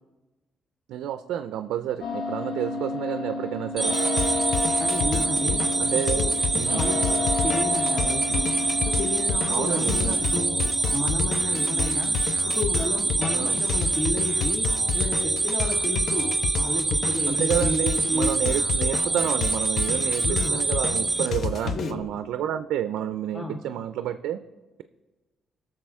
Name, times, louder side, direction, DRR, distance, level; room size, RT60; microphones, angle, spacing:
voice 1, 0.9-4.0 5.8-6.2 6.5-6.9 9.5-10.2 13.3-13.6 17.3-24.4, right 10 dB, 85° right, 10 dB, 0.4 m, -29 dB
sound 1, 2.0-15.9, left 2 dB, 80° left, 2.1 m, -32 dB
sound 2, 3.8-21.3, right 3 dB, 15° right, 0.7 m, -26 dB
sound 3, 3.9-22.0, left 6 dB, 55° left, 0.6 m, -31 dB
voice 2, 4.8-5.7 6.2-6.3 6.7-10.6 10.9-18.4 20.0-20.6 21.6-22.0 23.3-23.6, left 1 dB, 30° left, 2 dB, 1.0 m, -32 dB
18.5 x 6.6 x 3.5 m, 1.2 s
cardioid pair, 90°, 0 cm